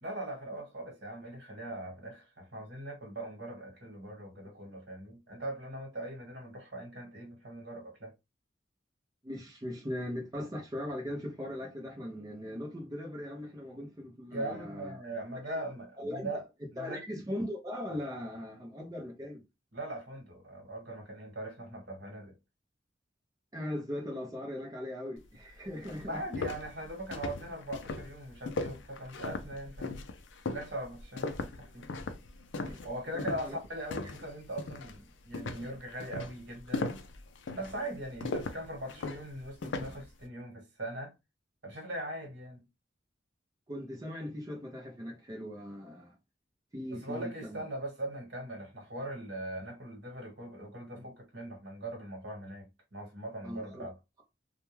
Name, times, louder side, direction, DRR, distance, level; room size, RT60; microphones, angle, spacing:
voice 1, 0.0-8.1 14.3-16.4 16.7-17.0 19.7-22.3 26.0-30.0 30.4-31.8 32.8-37.0 37.5-41.1 41.6-42.6 46.9-54.0, right 1 dB, 65° right, 1.2 m, -41 dB
voice 2, 9.2-15.0 15.4-15.6 16.0-16.3 16.8-19.4 23.5-26.4 32.6-32.8 33.1-33.6 43.7-46.1 46.7-47.6 53.4-53.9, left 1 dB, 20° right, 0.5 m, -39 dB
sound 1, 25.3-25.4 25.8-34.3 34.6-35.0 35.3-40.0, left 3 dB, 80° left, 0.5 m, -38 dB
2.3 x 2.1 x 3.0 m
head